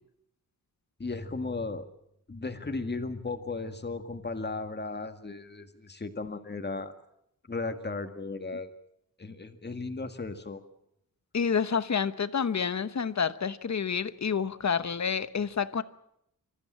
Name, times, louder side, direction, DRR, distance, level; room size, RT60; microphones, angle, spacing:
voice 1, 1.0-1.9 2.3-6.9 7.5-8.7 9.2-10.6, left 3 dB, 30° left, 1.9 m, -35 dB
voice 2, 11.3-15.8, left 6 dB, 50° left, 1.1 m, -29 dB
26.5 x 14.0 x 8.8 m
wide cardioid pair, 140°, 35 cm